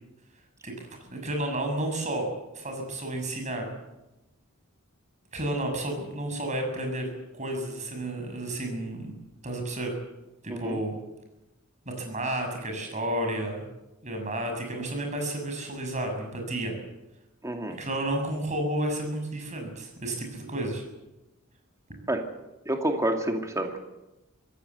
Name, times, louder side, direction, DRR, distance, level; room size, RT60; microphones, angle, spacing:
voice 1, 0.6-2.3 2.5-3.7 5.3-9.2 9.4-9.9 10.4-10.9 11.8-13.6 14.0-16.8 17.8-20.8, right 1 dB, 35° right, 4 dB, 6.7 m, -31 dB
voice 2, 10.5-10.8 17.4-17.8 22.1-22.2 22.7-23.8, right 1 dB, 15° right, 3 dB, 2.4 m, -28 dB
25.5 x 16.5 x 8.2 m, 0.98 s
head